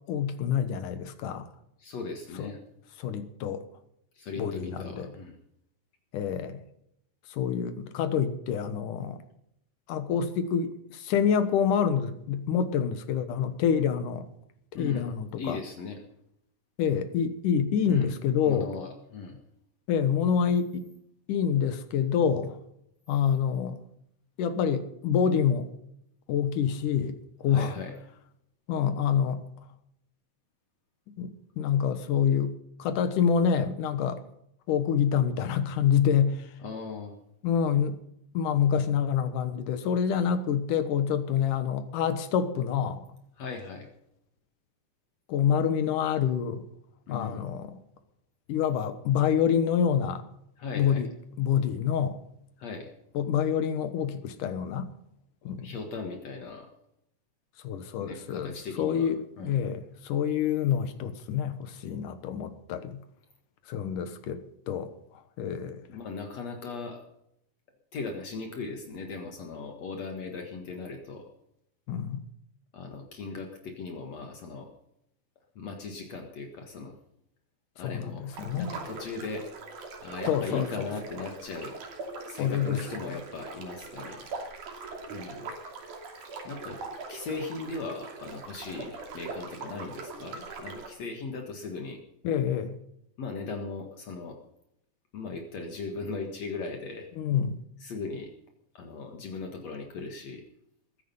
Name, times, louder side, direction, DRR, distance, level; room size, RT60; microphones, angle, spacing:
voice 1, 0.1-1.5 2.4-2.5 3.0-3.6 4.4-5.1 6.1-6.6 7.3-9.2 9.9-14.3 14.7-15.6 16.8-18.7 19.9-20.9 21.3-22.6 23.1-23.8 24.4-25.7 26.3-27.2 27.4-27.7 28.7-29.4 31.1-32.5 32.8-34.2 34.7-36.5 37.4-38.0 38.3-43.0 45.3-46.7 47.1-47.8 48.5-50.2 50.7-51.1 51.4-52.2 53.1-54.9 55.4-55.7 57.6-63.0 63.7-64.9 65.4-65.8 71.9-72.2 77.8-78.8 80.3-80.9 82.4-82.8 92.2-92.8 97.2-97.6, left 8 dB, 85° left, 2.8 m, -27 dB
voice 2, 1.8-2.6 4.1-5.4 14.8-15.1 15.4-16.0 17.9-18.1 18.4-19.4 27.5-27.9 36.6-37.2 43.4-43.9 47.1-47.4 50.6-51.0 52.6-52.9 55.6-56.7 58.0-59.1 59.4-59.6 65.9-67.0 67.9-71.2 72.7-74.7 75.6-77.0 77.8-79.5 80.0-81.8 82.2-84.4 85.1-85.5 86.4-86.8 87.1-92.0 93.2-94.4 95.1-97.1 97.8-98.3 98.7-100.4, left 4 dB, 60° left, 2.8 m, -38 dB
sound 1, 78.3-90.9, right 3 dB, 75° right, 4.3 m, -41 dB
21.0 x 10.0 x 5.6 m
omnidirectional pair, 3.6 m